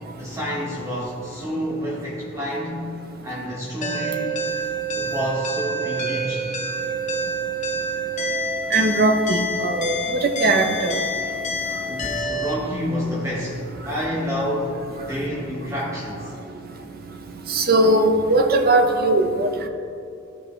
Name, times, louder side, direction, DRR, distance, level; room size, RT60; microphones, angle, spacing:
voice 1, 0.2-4.4 4.9-6.5 11.8-16.4, equal, 15° right, -5 dB, 1.1 m, -29 dB
sound 1, 3.8-12.5, right 1 dB, 40° left, 0.7 m, -27 dB
voice 2, 8.7-9.9 10.2-11.0 17.5-19.7, right 2 dB, 50° right, 5 dB, 0.8 m, -19 dB
14.0 x 5.0 x 3.2 m, 2.7 s
head